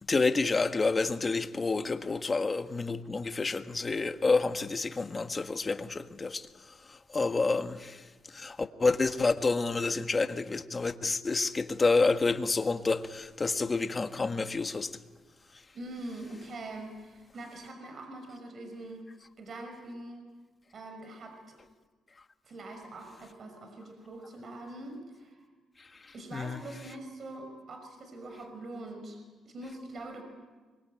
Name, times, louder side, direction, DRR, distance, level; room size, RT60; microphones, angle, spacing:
voice 1, 0.1-6.5 6.9-14.9 26.3-26.6, left 3 dB, 30° left, 1.5 m, -29 dB
voice 2, 15.7-19.0 19.4-20.3 20.7-21.6 22.4-25.5 26.1-29.2 29.5-30.2, right 2 dB, 50° right, 5.9 m, -43 dB
25.0 x 23.5 x 9.2 m
cardioid pair, 90°, 0 cm